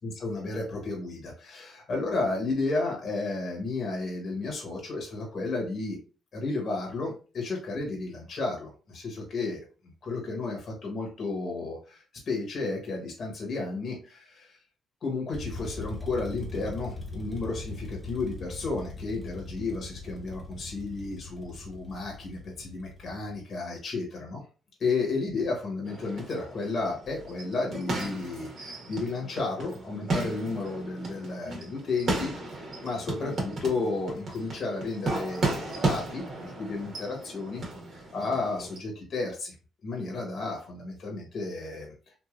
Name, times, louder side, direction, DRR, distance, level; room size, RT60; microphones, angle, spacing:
voice 1, 0.0-6.0 6.3-14.6 15.0-24.4 24.8-37.6 38.1-39.5 39.8-42.2, left 3 dB, 50° left, 0 dB, 1.1 m, -33 dB
sound 1, 15.3-23.4, left 3 dB, 10° left, 1.1 m, -41 dB
sound 2, 25.9-38.8, right 2 dB, 55° right, 1.3 m, -35 dB
3.1 x 2.6 x 2.4 m, 0.35 s
cardioid pair, 90°, 0 cm